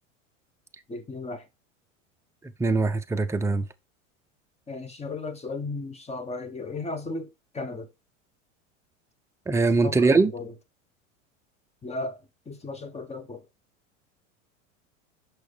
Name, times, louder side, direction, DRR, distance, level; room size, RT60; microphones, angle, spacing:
voice 1, 0.9-1.4 4.7-7.3 7.5-7.9 9.8-10.5 11.8-12.2 12.5-13.4, left 3 dB, 15° left, 1.2 m, -35 dB
voice 2, 2.6-3.7 9.5-10.3, right 3 dB, 5° right, 0.6 m, -22 dB
6.2 x 5.7 x 3.4 m
hypercardioid pair, 95°, 39 cm